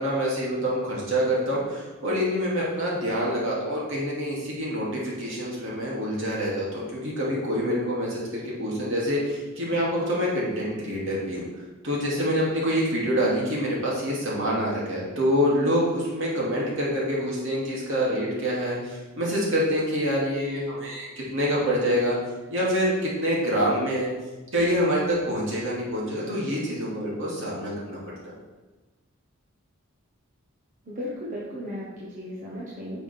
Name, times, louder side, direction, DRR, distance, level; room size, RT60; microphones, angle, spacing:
voice 1, 0.0-11.4 11.8-21.1 21.3-22.2 22.5-24.1 24.5-28.0, equal, 60° right, -5 dB, 2.6 m, -26 dB
voice 2, 30.8-33.0, equal, 35° right, -7 dB, 1.5 m, -35 dB
9.9 x 6.0 x 3.5 m, 1.2 s
head